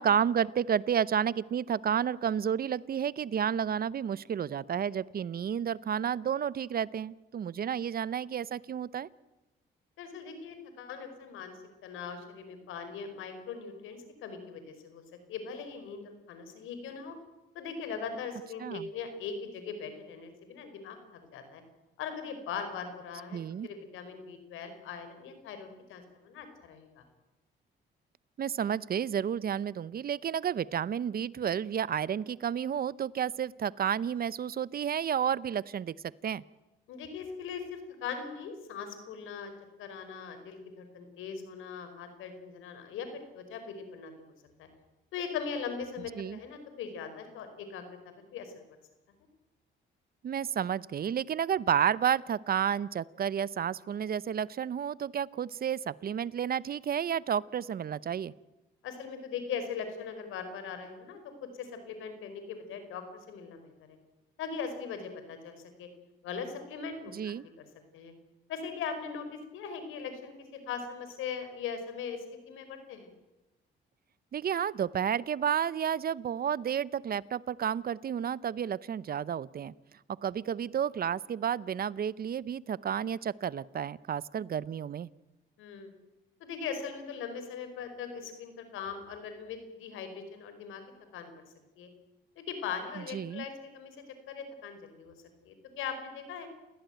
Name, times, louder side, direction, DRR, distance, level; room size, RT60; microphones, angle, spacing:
voice 1, 0.0-9.1 18.6-18.9 23.3-23.7 28.4-35.9 36.2-36.4 46.2-46.4 50.2-58.3 67.1-67.4 74.3-79.7 80.2-85.1 93.1-93.4, right 8 dB, 50° right, 20 dB, 0.8 m, -31 dB
voice 2, 10.0-15.0 15.3-17.2 17.5-21.6 22.0-27.0 36.9-39.5 39.8-44.3 44.6-44.7 45.1-48.5 58.8-64.0 64.4-65.9 66.2-67.6 67.9-68.1 68.5-73.1 85.6-85.9 86.4-90.8 91.1-91.4 91.8-91.9 92.4-96.5, left 6 dB, 90° left, 8 dB, 5.0 m, -40 dB
29.0 x 16.5 x 9.2 m, 1.0 s
cardioid pair, 90°, 20 cm